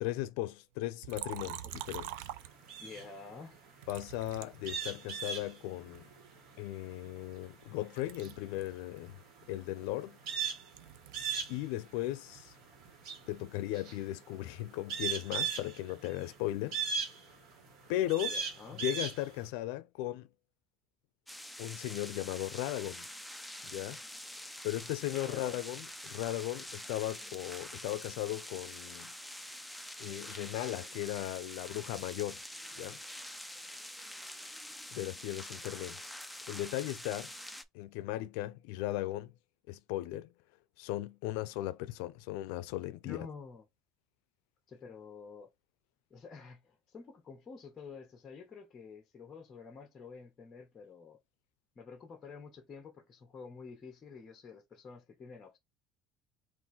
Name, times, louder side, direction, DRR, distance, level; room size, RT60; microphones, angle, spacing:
voice 1, 0.0-2.3 3.9-6.1 6.6-9.2 9.5-10.2 11.5-12.5 13.3-16.8 17.9-18.3 18.8-20.3 21.6-23.1 23.6-24.0 24.6-29.1 30.0-32.4 32.7-33.0 34.9-36.1 36.5-37.3 37.7-39.3 39.7-40.3 40.8-43.3, left 15 dB, 80° left, 0.4 m, -37 dB
Liquid, 1.0-3.0 3.8-5.4 5.9-7.7 7.9-11.6 11.9-13.5, right 13 dB, 90° right, 0.4 m, -47 dB
sound 1, 1.7-19.5, right 6 dB, 55° right, 1.4 m, -39 dB
voice 2, 2.8-3.6 18.3-18.8 25.1-25.6 43.0-43.6 44.7-45.5 46.1-51.2 51.8-55.6, left 5 dB, 25° left, 0.8 m, -49 dB
sound 2, 21.3-37.6, left 1 dB, ahead, 0.4 m, -46 dB
3.8 x 2.5 x 4.0 m
cardioid pair, 165°, 0 cm